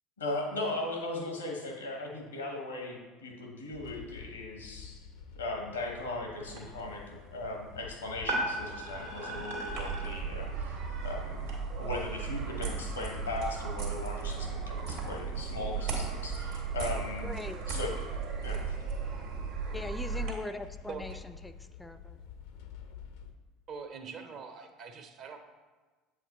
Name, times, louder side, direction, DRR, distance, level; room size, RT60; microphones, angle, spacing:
voice 1, 0.2-5.1 5.4-11.5 11.8-17.3 17.7-18.1 18.4-18.7, left 2 dB, 90° left, 1 dB, 1.0 m, -38 dB
sound 1, 3.7-23.3, left 7 dB, 70° left, 0.5 m, -49 dB
sound 2, 6.4-11.6, right 1 dB, 85° right, 1.5 m, -39 dB
sound 3, 9.7-20.3, right 5 dB, 65° right, 1.5 m, -36 dB
voice 2, 17.2-17.6 19.7-22.2, left 2 dB, 10° left, 10 dB, 0.4 m, -41 dB
voice 3, 20.9-21.2 23.7-25.4, right 5 dB, 50° right, 6 dB, 0.7 m, -43 dB
7.5 x 4.8 x 3.0 m, 1.3 s
figure-of-eight pair, 65°, 0 cm